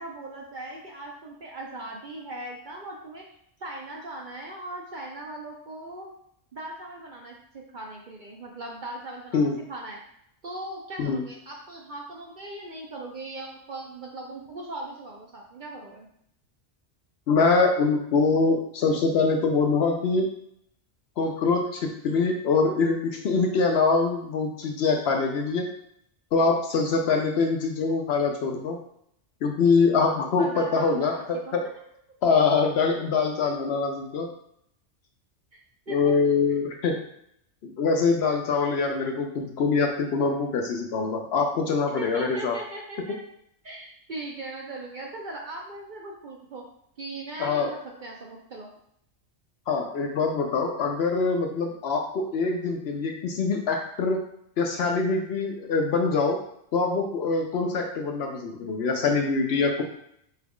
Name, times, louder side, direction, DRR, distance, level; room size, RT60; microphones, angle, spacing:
voice 1, 0.0-3.3 3.6-6.1 6.5-10.0 10.4-16.1 30.4-31.6 35.5-36.1 42.0-43.2 43.6-46.6 47.0-48.7, right 2 dB, 50° right, -1 dB, 0.6 m, -39 dB
voice 2, 17.3-20.3 21.2-25.7 26.3-28.8 29.4-31.6 32.2-34.3 35.9-37.0 37.6-42.6 47.4-47.7 49.7-54.2 54.6-56.4 56.7-59.8, left 4 dB, 65° left, 3 dB, 0.8 m, -24 dB
4.5 x 2.3 x 3.5 m, 0.72 s
omnidirectional pair, 1.3 m